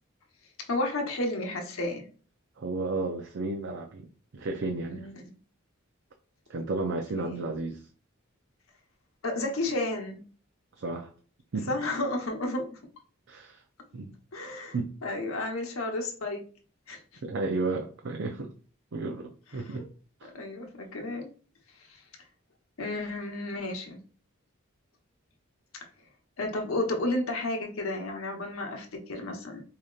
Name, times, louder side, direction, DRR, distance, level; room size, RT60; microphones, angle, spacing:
voice 1, 0.7-2.1 4.9-5.2 7.2-7.4 9.2-10.2 11.7-12.8 14.3-14.7 15.0-16.4 16.9-17.0 19.6-19.8 20.3-21.3 21.9-22.0 22.8-24.0 26.4-29.6, left 2 dB, 80° left, 1.0 m, -32 dB
voice 2, 2.6-5.1 6.5-7.8 10.8-11.1 11.5-11.7 13.3-13.6 13.9-14.1 14.7-14.9 17.2-18.5 18.9-19.9 20.2-20.3, right 3 dB, 60° right, 0.5 m, -33 dB
4.9 x 2.8 x 2.4 m
head